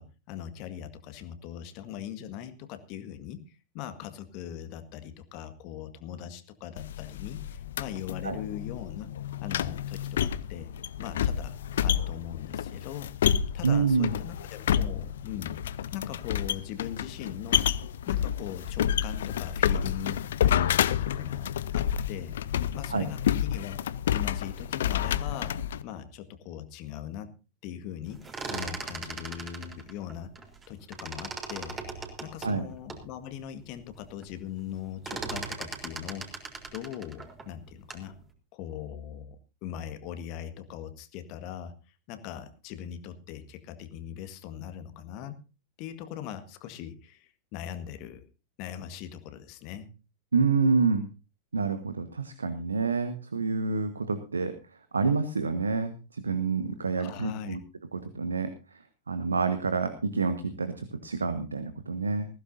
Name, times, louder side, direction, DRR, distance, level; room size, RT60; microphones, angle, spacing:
voice 1, 0.0-3.4 3.7-9.1 9.4-10.7 11.0-11.6 11.8-13.1 13.5-15.6 15.9-17.7 18.1-21.5 21.7-23.8 24.1-27.3 27.6-30.3 30.7-36.3 36.7-38.1 38.5-41.7 42.1-45.4 45.8-48.2 48.6-49.9 57.0-57.6, left 10 dB, 40° left, 10 dB, 1.7 m, -40 dB
sound 1, 6.8-25.8, left 9 dB, 60° left, 0.7 m, -29 dB
voice 2, 13.6-14.1 22.9-23.1 32.4-32.6 50.3-51.1 51.5-54.5 54.9-57.6 57.9-58.5 59.1-62.3, right 4 dB, 75° right, 11 dB, 1.3 m, -27 dB
sound 2, 28.1-30.7 30.9-33.1 33.6-33.7 33.9-34.3 34.6-38.1, right 4 dB, 20° right, 3.6 m, -38 dB
20.0 x 15.5 x 2.7 m, 0.32 s
figure-of-eight pair, 90°, 0 cm